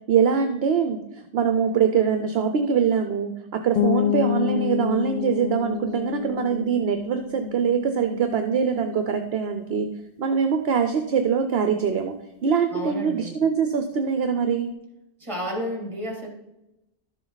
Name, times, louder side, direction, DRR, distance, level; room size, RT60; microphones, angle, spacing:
voice 1, 0.1-9.9 10.2-12.1 12.4-14.7, right 6 dB, 65° right, 7 dB, 0.9 m, -23 dB
sound 1, 3.8-9.4, left 13 dB, 55° left, 0.5 m, -29 dB
voice 2, 3.8-4.1 12.7-13.4 15.2-16.3, equal, 25° right, 0 dB, 2.6 m, -32 dB
12.0 x 7.4 x 4.0 m, 0.90 s
omnidirectional pair, 1.2 m